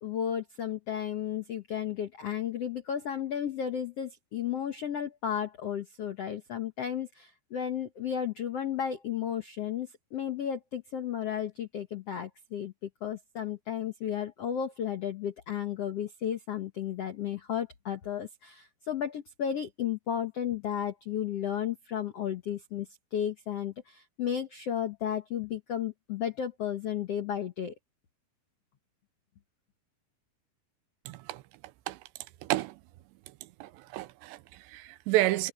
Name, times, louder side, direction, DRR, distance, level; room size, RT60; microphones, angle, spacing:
voice 1, 0.0-27.7, left 9 dB, 85° left, 1.3 m, -33 dB
voice 2, 31.1-31.4 31.9-32.0 32.4-32.8 33.6-35.5, right 17 dB, 85° right, 3.0 m, -30 dB
omnidirectional pair, 4.9 m